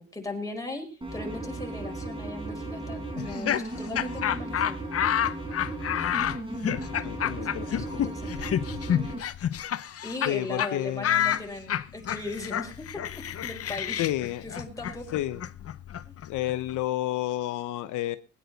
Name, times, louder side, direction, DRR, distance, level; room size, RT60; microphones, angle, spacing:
voice 1, 0.0-4.8 7.2-8.5 8.9-9.1 10.0-13.0 13.4-14.0 14.4-15.2 16.0-16.1, left 2 dB, 10° left, 2 dB, 5.0 m, -38 dB
sound 1, 1.0-9.2, right 2 dB, 15° right, 4.3 m, -36 dB
Laughter, 3.2-10.3 10.6-10.7 11.0-16.8, left 10 dB, 50° left, 0.8 m, -29 dB
voice 2, 6.7-7.9 10.2-11.4 14.0-14.4 15.1-15.4 16.2-18.2, left 14 dB, 85° left, 12 dB, 0.8 m, -31 dB
21.0 x 9.8 x 4.0 m, 0.34 s
cardioid pair, 90°, 30 cm